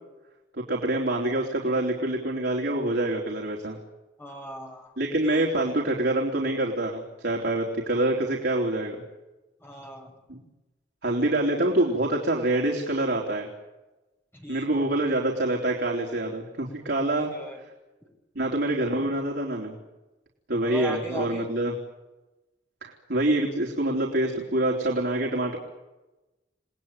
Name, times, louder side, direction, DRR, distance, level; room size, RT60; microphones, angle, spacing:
voice 1, 0.6-3.8 5.0-9.0 10.3-10.4 11.0-13.5 14.5-17.3 18.4-19.8 20.5-21.7 22.8-25.6, right 1 dB, 60° right, -1 dB, 3.8 m, -26 dB
voice 2, 4.2-4.9 5.2-5.8 9.6-10.1 14.3-14.9 17.0-17.6 20.6-21.5, left 1 dB, 15° left, 2 dB, 6.4 m, -38 dB
29.5 x 20.0 x 9.3 m, 1.1 s
head